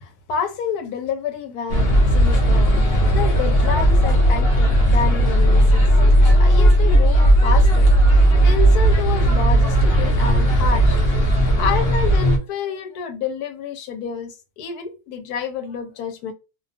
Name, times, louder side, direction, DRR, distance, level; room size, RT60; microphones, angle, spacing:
voice 1, 0.0-2.8 3.1-5.9 6.4-7.9 8.4-11.0 11.6-16.3, left 6 dB, 85° left, 1.1 m, -28 dB
sound 1, 1.7-12.4, right 1 dB, 55° left, 0.7 m, -15 dB
2.6 x 2.2 x 2.5 m
omnidirectional pair, 1.6 m